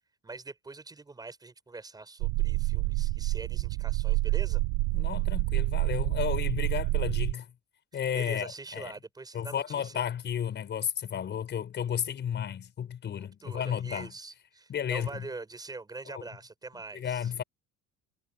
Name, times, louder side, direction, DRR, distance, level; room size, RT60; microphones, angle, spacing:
voice 1, 0.2-4.6 8.1-10.0 13.4-17.3, right 3 dB, 10° right, 7.8 m, -44 dB
sound 1, 2.2-7.3, right 22 dB, 75° right, 0.7 m, -28 dB
voice 2, 4.9-7.5 7.9-8.9 9.3-14.1 14.7-15.2 16.1-16.3 16.9-17.4, left 8 dB, 35° left, 6.0 m, -33 dB
cardioid pair, 175°, 33 cm